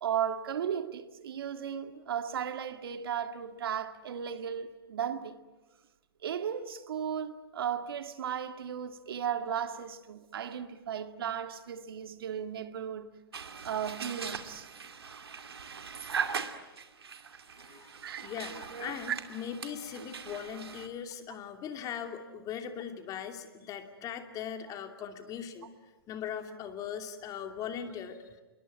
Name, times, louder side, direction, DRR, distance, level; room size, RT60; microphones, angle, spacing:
voice 1, 0.0-5.4 6.2-13.1 13.6-14.7 18.0-18.3 19.1-19.2, right 8 dB, 70° right, 1.9 m, -35 dB
sound 1, 13.3-20.9, right 6 dB, 85° right, 2.6 m, -40 dB
voice 2, 17.5-17.9 18.2-25.7 26.1-28.4, left 8 dB, 30° left, 2.8 m, -40 dB
27.5 x 22.5 x 9.5 m
hypercardioid pair, 125°, 13 cm